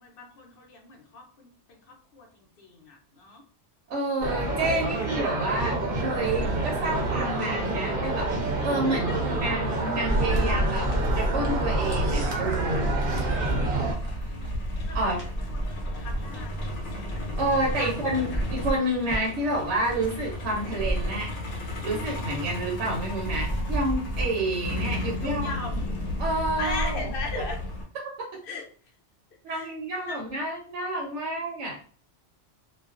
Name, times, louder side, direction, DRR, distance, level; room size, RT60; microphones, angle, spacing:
voice 1, 0.0-1.8 2.1-3.4 8.8-9.5 13.5-14.5 14.9-15.1 15.5-17.4 17.7-17.9 18.3-18.4 25.2-25.9 26.6-27.6 28.4-28.6 29.5-30.2, left 3 dB, 60° left, 0 dB, 0.8 m, -39 dB
voice 2, 3.9-10.9 11.2-13.0 14.9-15.2 17.4-21.3 21.8-25.5 26.2-27.1 29.4-31.8, right 1 dB, 85° right, -2 dB, 1.0 m, -29 dB
sound 1, 4.2-13.9, right 2 dB, 55° right, 0.7 m, -28 dB
sound 2, 6.4-12.3 12.9-13.5 13.8-20.2 20.5-21.9 22.2-24.3, right 1 dB, 15° left, 0.4 m, -36 dB
Truck, 10.1-27.8, equal, 80° left, 1.0 m, -31 dB
2.4 x 2.2 x 2.3 m, 0.43 s
omnidirectional pair, 1.2 m